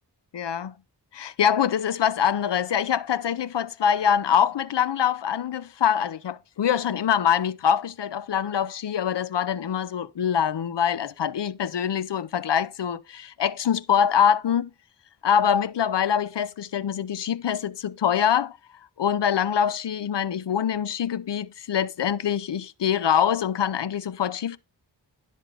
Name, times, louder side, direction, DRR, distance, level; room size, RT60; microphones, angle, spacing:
voice 1, 0.3-0.7 1.1-14.7 15.2-18.6 19.0-24.6, left 8 dB, 80° left, 0.6 m, -24 dB
10.5 x 6.3 x 3.9 m
wide cardioid pair, 65°, 41 cm